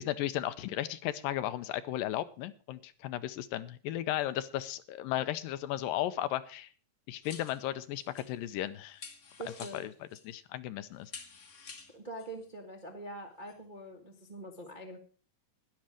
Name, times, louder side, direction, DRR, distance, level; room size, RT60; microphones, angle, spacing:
voice 1, 0.0-6.7 7.1-9.0 9.7-9.9 10.2-11.1, left 13 dB, 85° left, 13 dB, 2.4 m, -35 dB
sound 1, 7.2-8.6 8.9-10.3 11.0-12.4 13.5-13.6, left 5 dB, 50° left, 1.0 m, -50 dB
voice 2, 9.4-9.9 11.9-15.0, right 1 dB, 40° right, -1 dB, 0.6 m, -44 dB
12.0 x 10.5 x 5.0 m, 0.38 s
omnidirectional pair, 3.9 m